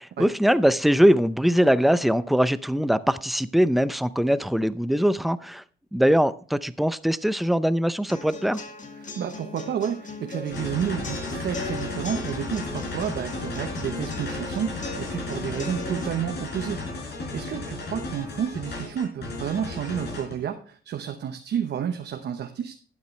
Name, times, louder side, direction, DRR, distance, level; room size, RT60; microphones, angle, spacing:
voice 1, 0.0-5.6 5.9-8.6, equal, ahead, 15 dB, 0.5 m, -22 dB
sound 1, 8.1-16.1, left 3 dB, 40° left, 2.0 m, -38 dB
voice 2, 9.0-22.8, right 8 dB, 60° right, 6 dB, 1.0 m, -31 dB
sound 2, 10.5-20.3, left 3 dB, 55° left, 4.6 m, -34 dB
12.0 x 8.7 x 3.2 m, 0.42 s
cardioid pair, 90°, 20 cm